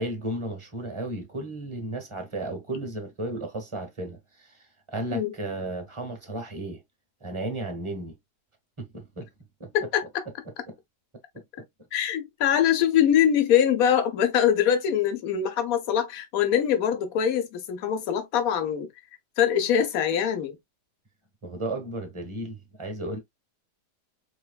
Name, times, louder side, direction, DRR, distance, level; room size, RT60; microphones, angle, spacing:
voice 1, 0.0-4.5 4.9-6.8 7.2-8.1 8.8-9.3 9.6-9.7 10.7-10.8 11.3-11.4 21.4-23.2, right 1 dB, 20° right, 1.0 m, -34 dB
voice 2, 9.7-10.2 11.9-18.9 19.4-20.6, left 9 dB, 65° left, 1.2 m, -23 dB
4.6 x 3.0 x 2.2 m
omnidirectional pair, 1.8 m